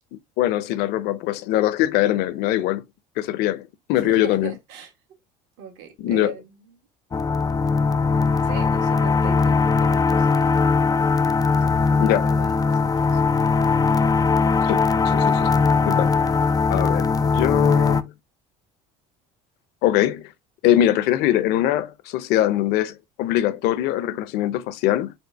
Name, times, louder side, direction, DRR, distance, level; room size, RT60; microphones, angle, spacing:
voice 1, 0.1-2.8 3.2-4.5 6.0-6.3 12.0-12.3 14.6-14.8 15.0-15.5 15.9-16.3 16.7-18.1 19.8-20.3 20.6-25.1, left 13 dB, 70° left, 0.6 m, -22 dB
voice 2, 3.9-4.9 5.6-6.5 8.4-10.7 11.6-13.2, right 7 dB, 80° right, 1.8 m, -39 dB
sound 1, 7.1-18.0, left 4 dB, 20° left, 0.4 m, -20 dB
4.3 x 3.5 x 3.4 m
supercardioid pair, 100°, 17 cm